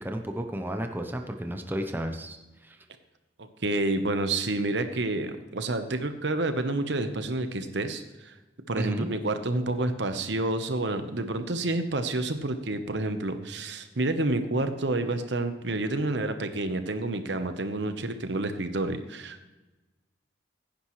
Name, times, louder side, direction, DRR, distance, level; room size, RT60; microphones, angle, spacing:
voice 1, 0.0-2.4 2.6-2.8 8.7-9.1, equal, 10° right, 5 dB, 0.8 m, -32 dB
voice 2, 3.4-8.3 8.7-19.5, right 2 dB, 70° right, 8 dB, 1.0 m, -29 dB
16.0 x 10.0 x 3.2 m, 1.1 s
head